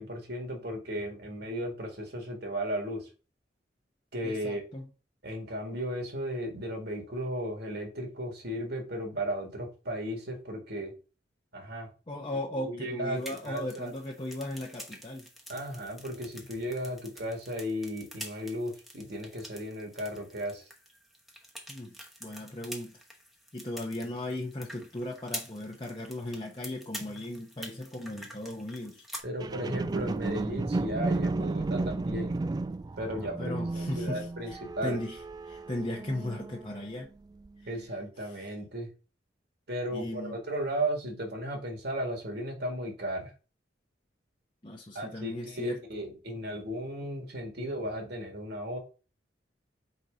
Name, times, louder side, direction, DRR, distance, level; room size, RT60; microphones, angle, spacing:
voice 1, 0.0-3.1 4.1-4.6 5.2-10.9 11.5-11.9 12.6-13.9 15.5-20.7 29.2-32.4 33.0-35.0 37.7-38.9 39.7-43.3 44.9-48.8, equal, 65° right, 2.0 m, -35 dB
voice 2, 4.2-4.9 12.1-15.3 21.7-21.9 22.2-23.0 23.5-29.0 33.2-35.2 35.4-37.1 37.6-37.7 38.2-38.4 39.9-40.4 44.6-45.8, left 1 dB, 30° left, 0.9 m, -37 dB
sound 1, 13.1-29.2, equal, ahead, 1.0 m, -47 dB
sound 2, 29.4-36.8 37.4-37.5, right 2 dB, 25° right, 0.3 m, -33 dB
4.6 x 4.2 x 5.1 m
head